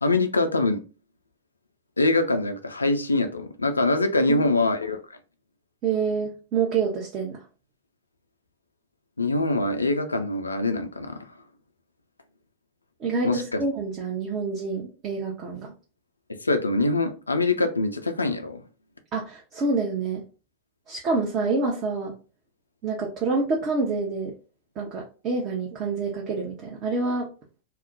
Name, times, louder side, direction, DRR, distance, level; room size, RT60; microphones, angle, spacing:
voice 1, 0.0-0.8 2.0-5.0 9.2-11.2 13.2-13.6 16.4-18.6, left 2 dB, 80° left, 0.4 m, -24 dB
voice 2, 4.3-4.7 5.8-7.4 13.0-15.7 19.1-20.2 20.9-22.1 22.8-24.3 24.8-27.3, right 4 dB, 35° right, 0.6 m, -27 dB
2.3 x 2.0 x 3.7 m
figure-of-eight pair, 90°, 0 cm